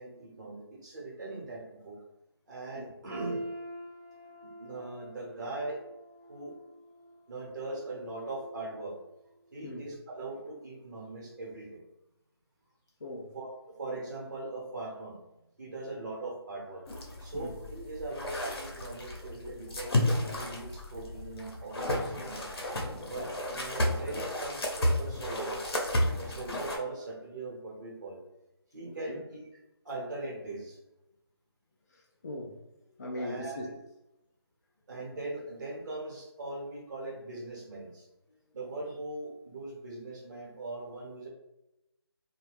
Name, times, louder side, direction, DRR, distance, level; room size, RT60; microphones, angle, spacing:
voice 1, 0.0-2.0 2.5-3.4 4.6-5.8 6.3-6.5 7.3-8.9 9.5-11.8 13.3-13.5 13.8-15.1 15.6-16.8 17.2-19.9 20.3-22.4 23.0-25.6 26.2-28.2 28.7-29.4 29.8-30.8 33.1-33.7 34.9-38.1 38.5-41.3, right 2 dB, 45° right, -2 dB, 1.0 m, -40 dB
sound 1, 3.1-9.1 9.5-9.7 10.4-10.5, right 1 dB, 30° right, 0.4 m, -46 dB
voice 2, 13.0-13.4 17.3-17.6 28.8-29.2 31.9-32.6 33.0-33.8, left 1 dB, 40° left, -1 dB, 0.4 m, -40 dB
sound 2, 16.9-26.8, left 1 dB, 60° left, 0.8 m, -32 dB
2.7 x 2.3 x 3.3 m, 0.92 s
figure-of-eight pair, 160°, 14 cm